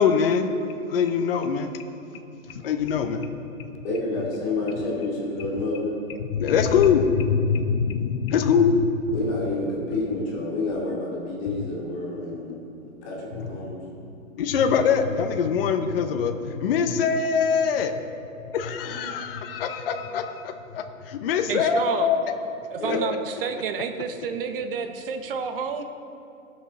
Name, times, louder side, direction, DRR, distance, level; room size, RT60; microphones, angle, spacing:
voice 1, 0.0-1.7 2.6-3.8 4.2-4.3 6.2-9.2 13.3-13.5 14.4-17.9 18.5-22.4 22.9-23.0, left 6 dB, 45° left, 6 dB, 0.7 m, -23 dB
voice 2, 3.8-6.0 9.1-13.8 18.8-19.0 22.8-23.0, left 2 dB, 25° left, -5 dB, 2.6 m, -29 dB
voice 3, 21.5-22.1 22.7-25.8, right 6 dB, 45° right, 7 dB, 0.9 m, -30 dB
16.5 x 6.3 x 4.2 m, 2.6 s
hypercardioid pair, 150°, 41 cm